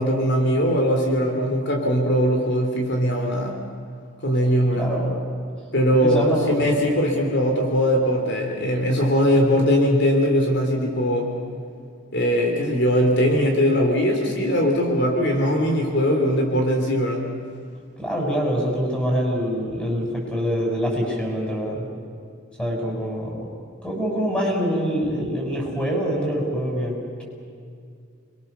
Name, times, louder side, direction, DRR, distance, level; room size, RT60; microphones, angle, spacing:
voice 1, 0.0-3.6 4.2-4.9 5.7-11.3 12.1-17.3, equal, 60° left, 1 dB, 3.4 m, -20 dB
voice 2, 4.7-5.2 5.9-6.7 18.0-21.9 22.6-23.5 23.8-27.2, equal, 5° left, -1 dB, 6.8 m, -25 dB
30.0 x 22.5 x 6.9 m, 2.3 s
head